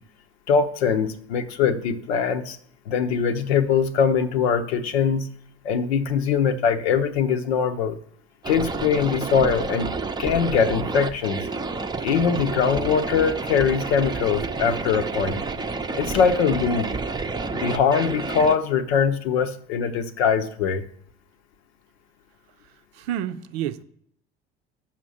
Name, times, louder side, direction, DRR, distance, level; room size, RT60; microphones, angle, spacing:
voice 1, 0.5-2.6 2.9-5.3 5.6-8.0 8.5-9.9 10.2-11.4 12.0-15.4 16.0-16.9 17.5-20.8, left 6 dB, 70° left, 0.8 m, -22 dB
sound 1, 8.4-18.6, right 3 dB, 15° right, 0.6 m, -29 dB
voice 2, 22.9-23.8, right 11 dB, 70° right, 0.6 m, -29 dB
6.0 x 5.8 x 6.2 m
figure-of-eight pair, 60°, 32 cm